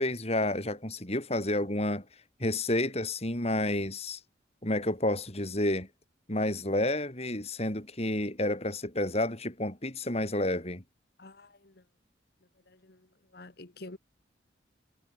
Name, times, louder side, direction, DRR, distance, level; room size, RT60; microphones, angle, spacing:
voice 1, 0.0-2.0 2.4-4.2 4.6-5.9 6.3-10.8, left 1 dB, 35° left, 5.3 m, -30 dB
voice 2, 13.3-14.0, left 2 dB, 55° left, 1.5 m, -46 dB
head